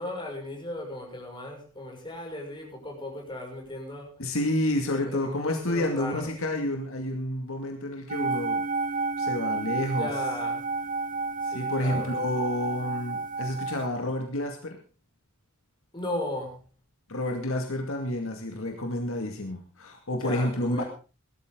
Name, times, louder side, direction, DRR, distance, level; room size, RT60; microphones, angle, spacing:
voice 1, 0.0-4.2 4.9-6.3 9.9-10.6 11.4-12.1 15.9-16.6 20.1-20.8, left 1 dB, 20° left, 0 dB, 6.3 m, -36 dB
voice 2, 4.2-8.6 9.2-10.1 11.5-14.8 17.1-20.8, left 1 dB, 65° left, 3 dB, 2.3 m, -29 dB
sound 1, 8.1-13.9, right 3 dB, 40° right, 0.8 m, -30 dB
18.5 x 13.0 x 3.8 m, 0.35 s
head